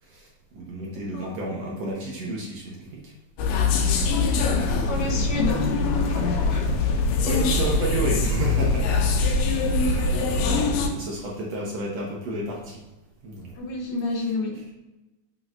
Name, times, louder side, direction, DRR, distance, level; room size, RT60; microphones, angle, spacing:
voice 1, 0.0-3.1 3.5-3.6 4.5-5.1 7.2-9.5 9.8-12.8 13.2-13.5, right 2 dB, 70° right, -3 dB, 1.7 m, -32 dB
sound 1, 3.4-10.9, left 3 dB, 90° left, 2.5 m, -23 dB
voice 2, 3.9-6.8 9.4-9.5 13.6-14.6, left 2 dB, 70° left, 0 dB, 1.8 m, -31 dB
6.4 x 6.2 x 2.6 m, 1.1 s
omnidirectional pair, 4.0 m